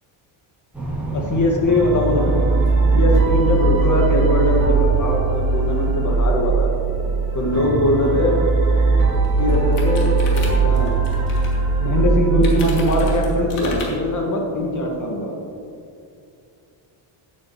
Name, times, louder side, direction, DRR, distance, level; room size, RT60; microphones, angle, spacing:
sound 1, 0.7-14.9, right 1 dB, 5° right, 3.0 m, -34 dB
voice 1, 1.1-2.3 2.9-6.7 7.3-8.5 9.4-11.0 11.8-15.4, left 1 dB, 35° left, 0 dB, 2.1 m, -21 dB
sound 2, 1.7-13.4, right 4 dB, 40° right, 2.6 m, -19 dB
sound 3, 8.7-8.8 9.1-11.6 12.4-13.9, left 3 dB, 80° left, 2.8 m, -35 dB
16.5 x 8.6 x 3.2 m, 2.5 s
cardioid pair, 150°, 49 cm